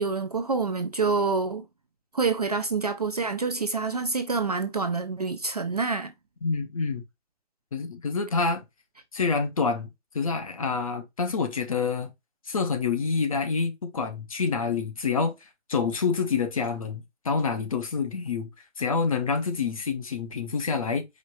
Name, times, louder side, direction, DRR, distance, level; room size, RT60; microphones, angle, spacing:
voice 1, 0.0-1.7 2.1-6.1, right 4 dB, 35° right, 0.4 m, -27 dB
voice 2, 6.4-7.0 7.7-8.6 9.1-9.9 10.1-12.1 12.5-18.5 18.8-21.1, left 5 dB, 30° left, 0.6 m, -27 dB
5.0 x 2.5 x 4.0 m
figure-of-eight pair, 145°, 35 cm